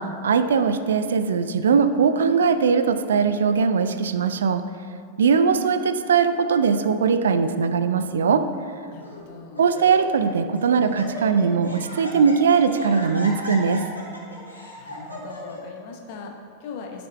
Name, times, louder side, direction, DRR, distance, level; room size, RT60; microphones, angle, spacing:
voice 1, 0.0-4.6 5.2-8.4 9.6-13.8, right 5 dB, 65° right, 10 dB, 0.3 m, -20 dB
Laughter, 7.2-7.6 8.4-8.5 9.0-9.3 9.5-10.3 10.6-15.6, equal, 85° left, 1.6 m, -37 dB
voice 2, 8.9-9.6 14.3-17.1, left 4 dB, 50° left, 1 dB, 1.0 m, -40 dB
12.0 x 6.8 x 2.2 m, 2.3 s
figure-of-eight pair, 90°, 0 cm